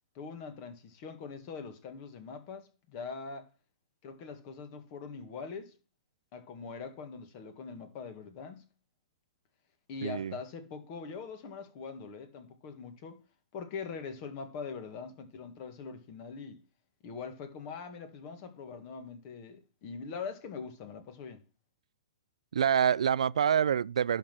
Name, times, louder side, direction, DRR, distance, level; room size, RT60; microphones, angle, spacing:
voice 1, 0.2-3.5 4.0-5.7 6.3-8.6 9.9-13.2 13.5-16.6 17.0-21.4, left 5 dB, 40° left, 1.9 m, -42 dB
voice 2, 10.0-10.4 22.5-24.2, right 8 dB, 80° right, 0.3 m, -26 dB
11.5 x 3.9 x 6.1 m
hypercardioid pair, 130°, 3 cm